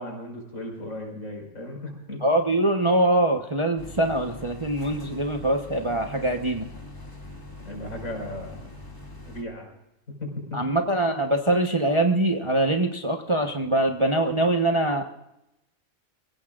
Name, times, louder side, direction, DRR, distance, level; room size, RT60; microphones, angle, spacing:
voice 1, 0.0-2.2 7.6-8.7 9.3-9.7 10.2-10.6, left 1 dB, 65° left, 1 dB, 5.6 m, -36 dB
voice 2, 2.2-6.7 10.5-15.0, right 1 dB, 25° right, 3 dB, 1.0 m, -23 dB
sound 1, 3.8-9.4, left 2 dB, 15° left, 2.4 m, -42 dB
28.0 x 16.5 x 2.5 m, 0.88 s
omnidirectional pair, 1.5 m